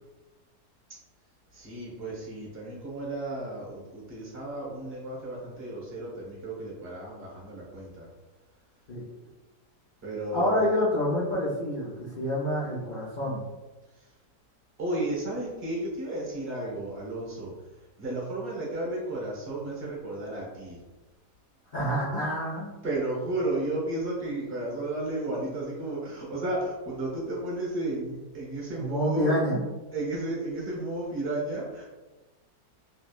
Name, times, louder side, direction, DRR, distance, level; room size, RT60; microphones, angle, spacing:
voice 1, 1.5-8.1 10.0-10.7 13.9-14.1 14.8-17.5 18.0-20.8 22.8-29.4 29.9-31.8, right 2 dB, 45° right, -4 dB, 1.1 m, -33 dB
voice 2, 10.3-13.4 21.7-22.7 28.7-29.6, equal, 90° left, -8 dB, 0.4 m, -27 dB
3.2 x 3.0 x 2.3 m, 1.1 s
omnidirectional pair, 1.7 m